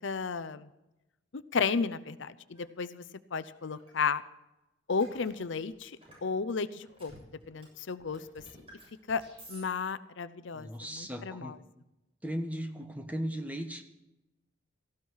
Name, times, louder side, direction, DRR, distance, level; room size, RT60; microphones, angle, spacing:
voice 1, 0.0-0.7 1.3-3.0 3.3-4.2 4.9-7.1 7.5-8.4 9.1-9.2 9.5-11.6, left 5 dB, 75° left, 14 dB, 0.6 m, -33 dB
sound 1, 2.6-2.7 3.5-3.9 5.0-6.2 6.8-7.6 7.9-9.6, right 1 dB, 30° right, 7.4 m, -53 dB
voice 2, 10.5-11.6 12.2-13.8, equal, 10° right, 5 dB, 1.2 m, -37 dB
18.0 x 14.5 x 4.7 m, 0.96 s
head